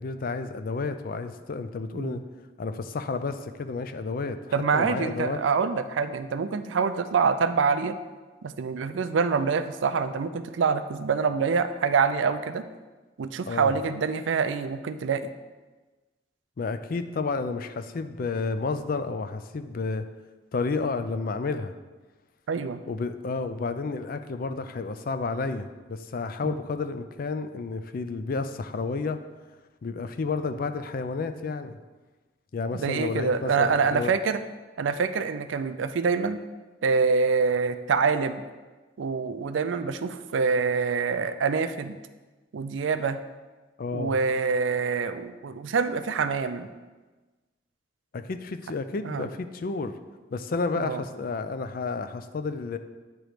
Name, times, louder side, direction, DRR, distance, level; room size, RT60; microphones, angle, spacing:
voice 1, 0.0-2.2 2.6-5.4 13.5-13.8 16.6-20.0 20.5-21.7 22.9-29.2 29.8-31.8 32.5-34.2 43.8-44.2 48.1-49.9 50.3-52.8, left 4 dB, 50° left, 9 dB, 0.4 m, -31 dB
voice 2, 4.5-7.9 8.4-12.6 13.2-15.3 22.5-22.8 26.4-26.6 32.7-34.4 34.8-36.4 36.8-38.4 39.0-42.0 42.5-43.2 43.9-46.7 49.0-49.3 50.8-51.0, right 5 dB, 85° right, 11 dB, 0.4 m, -26 dB
9.0 x 3.1 x 4.9 m, 1.3 s
head